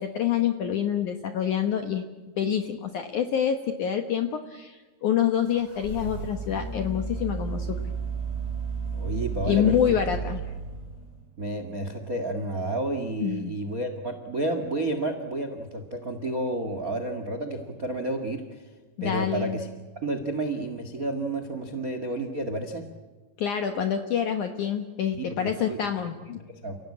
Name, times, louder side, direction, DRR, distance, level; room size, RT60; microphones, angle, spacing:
voice 1, 0.0-2.0 2.4-7.7 9.4-10.4 13.2-13.5 19.0-19.6 23.4-26.4, left 9 dB, 70° left, 6 dB, 2.0 m, -27 dB
sound 1, 5.4-11.3, right 4 dB, 15° right, 6.8 m, -33 dB
voice 2, 8.9-9.8 11.4-18.6 19.0-19.7 20.0-22.9 25.1-25.8 26.3-26.8, right 2 dB, 70° right, 7 dB, 0.8 m, -31 dB
30.0 x 17.0 x 8.6 m, 1.3 s
omnidirectional pair, 5.0 m